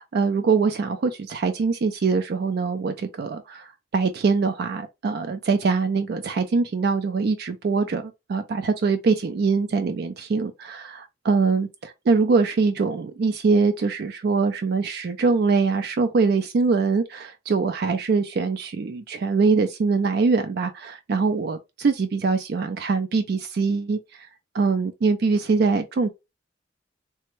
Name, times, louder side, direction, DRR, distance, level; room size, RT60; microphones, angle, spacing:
voice 1, 0.0-24.0 24.5-26.1, right 4 dB, 55° right, 0.4 m, -23 dB
3.3 x 2.1 x 3.0 m
head